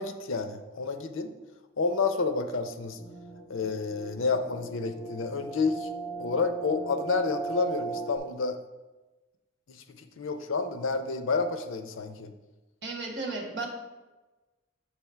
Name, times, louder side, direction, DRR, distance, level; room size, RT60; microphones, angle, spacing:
voice 1, 0.0-1.3 1.8-3.0 3.5-5.9 6.2-8.6 9.7-12.3, left 4 dB, 80° left, 8 dB, 0.6 m, -30 dB
sound 1, 2.9-8.2, right 3 dB, ahead, 1.8 m, -38 dB
voice 2, 12.8-13.7, right 3 dB, 60° right, 1 dB, 1.4 m, -34 dB
6.9 x 3.5 x 5.6 m, 1.1 s
head